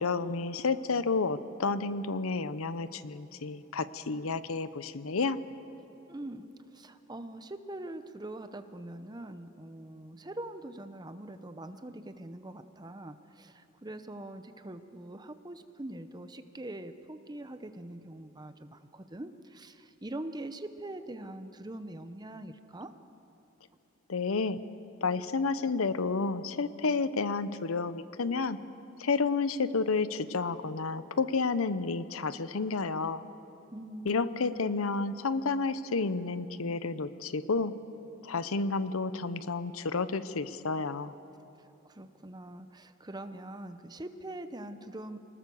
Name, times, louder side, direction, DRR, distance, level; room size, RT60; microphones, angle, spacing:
voice 1, 0.0-5.4 24.1-24.6 25.0-28.6 29.0-33.2 34.0-37.7 38.2-41.1, left 4 dB, 85° left, 14 dB, 0.8 m, -30 dB
voice 2, 6.1-6.5 6.7-22.9 33.7-34.9 41.8-45.2, right 1 dB, 20° right, 10 dB, 0.8 m, -43 dB
26.5 x 19.5 x 7.1 m, 2.9 s
head